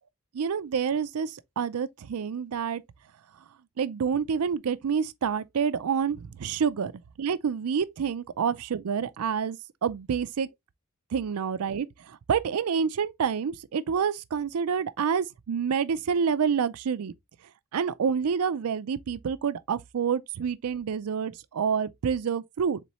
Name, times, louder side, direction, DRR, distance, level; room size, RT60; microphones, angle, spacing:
voice 1, 0.3-2.8 3.8-6.9 7.2-10.5 11.1-17.1 17.7-22.8, right 6 dB, 90° right, 0.4 m, -28 dB
4.1 x 3.7 x 3.0 m
head